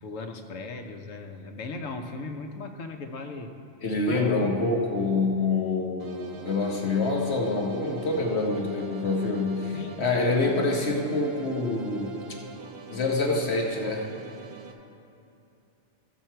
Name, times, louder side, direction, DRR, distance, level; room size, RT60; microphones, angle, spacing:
voice 1, 0.0-3.5 3.9-4.6 9.7-10.8 13.0-13.1, left 3 dB, 90° left, 6 dB, 1.2 m, -38 dB
voice 2, 3.8-12.2 12.9-14.1, left 3 dB, 60° left, 0 dB, 1.3 m, -26 dB
sound 1, 6.0-14.7, right 5 dB, 60° right, 1.0 m, -44 dB
13.5 x 7.4 x 4.5 m, 2.6 s
omnidirectional pair, 1.3 m